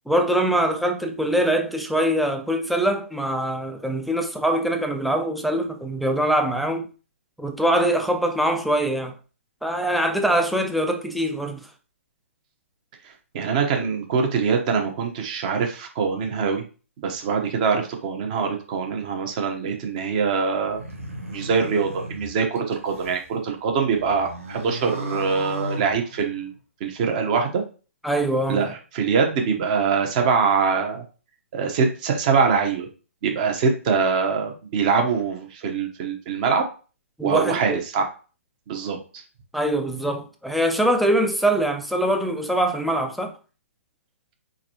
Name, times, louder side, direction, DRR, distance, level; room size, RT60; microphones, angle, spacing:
voice 1, 0.1-6.9 7.4-9.1 9.6-11.7 28.0-28.7 37.2-37.8 39.5-43.3, right 1 dB, ahead, 0.5 m, -23 dB
voice 2, 13.3-16.6 17.0-20.8 21.3-26.5 26.8-27.6 28.5-31.0 31.5-32.9 33.2-36.6 37.2-38.1 38.7-39.0, right 5 dB, 35° right, 1.1 m, -23 dB
sound 1, 20.6-23.3 23.7-26.6, right 1 dB, 85° right, 1.2 m, -36 dB
4.4 x 3.8 x 3.0 m
figure-of-eight pair, 125°, 7 cm